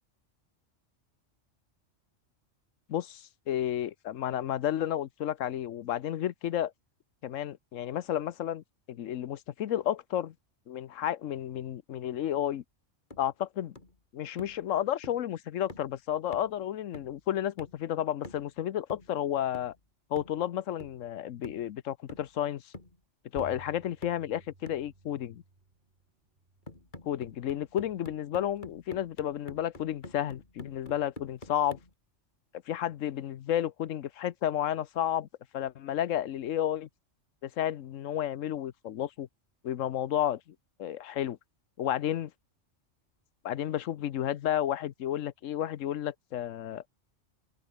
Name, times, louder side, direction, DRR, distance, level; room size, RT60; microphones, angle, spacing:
voice 1, 2.9-6.7 7.2-10.3 10.7-12.6 13.2-13.8 14.1-19.7 20.1-22.7 23.3-25.4 27.0-31.8 32.7-35.3 35.5-36.9 37.4-39.3 39.6-41.4 41.8-42.3 43.4-46.8, left 11 dB, 90° left, 1.1 m, -32 dB
sound 1, 13.1-13.3 13.8-14.0 14.4-14.6 15.0-15.3 15.7-16.0 16.3-16.6 16.9-17.2 17.6-17.8 18.2-18.6 18.9-19.2 19.5-19.8 20.2-20.4 20.8-21.1 21.4-21.7 22.1-22.5 22.7-23.0 23.4-23.6 24.0-24.3 24.7-24.9 26.7-31.9, left 2 dB, 40° left, 3.2 m, -48 dB
sound 2, 23.4-28.4, right 3 dB, 40° right, 2.6 m, -54 dB
open air
omnidirectional pair, 1.3 m